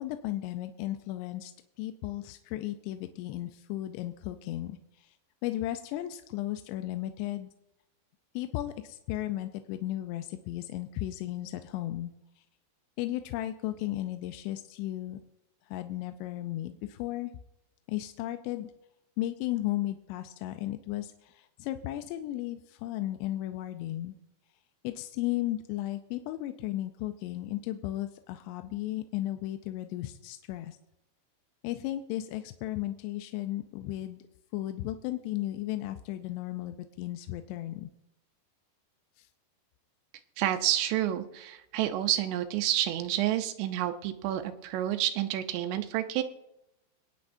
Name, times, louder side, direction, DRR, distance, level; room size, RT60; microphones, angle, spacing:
voice 1, 0.0-1.5 1.8-5.2 5.4-7.5 8.3-12.1 12.4-12.5 13.0-15.2 15.7-17.3 17.9-18.7 19.2-24.1 24.8-30.8 31.6-34.2 34.5-37.9 39.2-39.3, left 14 dB, 80° left, 8 dB, 2.6 m, -35 dB
voice 2, 40.4-46.2, right 12 dB, 80° right, 8 dB, 2.6 m, -29 dB
25.5 x 9.4 x 2.6 m, 0.88 s
omnidirectional pair, 5.0 m